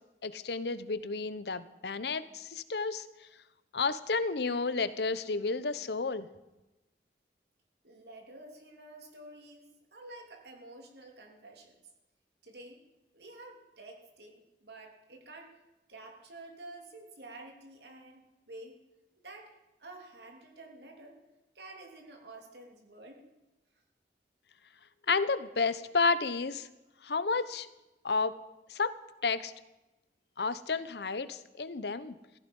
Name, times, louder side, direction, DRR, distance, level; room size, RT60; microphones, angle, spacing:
voice 1, 0.2-3.0 3.7-6.3 25.1-26.7 27.0-27.7 28.0-28.3 28.7-28.9 29.2-29.5 30.4-32.1, left 4 dB, 75° left, 14 dB, 0.8 m, -31 dB
voice 2, 7.8-11.8 12.4-12.8 13.1-15.5 15.9-18.7 19.2-21.2 21.5-23.2, right 2 dB, 75° right, 2 dB, 3.0 m, -50 dB
15.5 x 14.5 x 5.4 m, 1.0 s
head